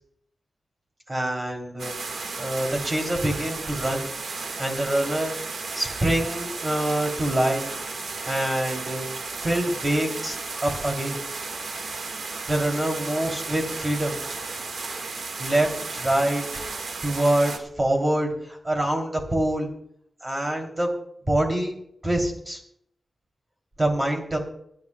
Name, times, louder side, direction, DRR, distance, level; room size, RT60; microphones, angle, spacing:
voice 1, 1.1-4.0 4.6-5.3 5.7-7.6 8.3-9.1 9.4-10.4 10.6-11.2 12.5-14.1 15.4-16.4 17.0-19.7 20.2-20.9 21.3-21.7 22.0-22.6 23.8-24.4, right 1 dB, 20° right, 1 dB, 3.3 m, -25 dB
sound 1, 1.8-17.6, right 4 dB, 85° right, 1.8 m, -34 dB
26.0 x 10.5 x 2.4 m, 0.71 s
wide cardioid pair, 130°, 0 cm